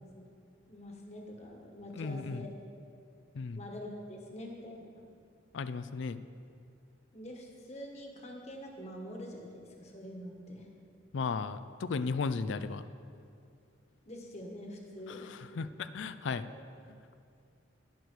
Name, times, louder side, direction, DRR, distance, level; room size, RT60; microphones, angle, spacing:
voice 1, 0.6-2.5 3.5-5.1 7.1-10.7 14.0-15.3 16.4-16.6, left 1 dB, 30° left, 1 dB, 1.5 m, -45 dB
voice 2, 2.0-2.5 3.3-3.6 5.5-6.2 11.1-12.8 15.3-16.5, left 4 dB, 65° left, 13 dB, 0.4 m, -35 dB
18.5 x 6.6 x 4.7 m, 2.5 s
head